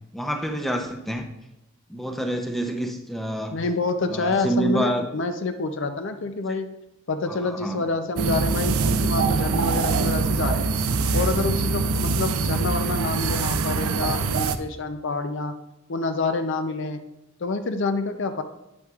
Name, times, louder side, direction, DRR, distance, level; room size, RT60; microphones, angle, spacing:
voice 1, 0.1-1.2 1.9-3.6 4.1-5.1 7.3-7.8, right 1 dB, ahead, 4 dB, 0.6 m, -27 dB
voice 2, 3.5-6.7 7.1-10.7 11.1-15.5 15.9-17.0 17.4-18.4, left 3 dB, 55° left, 8 dB, 0.5 m, -27 dB
sound 1, 8.2-14.6, right 4 dB, 80° right, 0.5 m, -23 dB
9.0 x 8.6 x 2.4 m, 0.91 s
head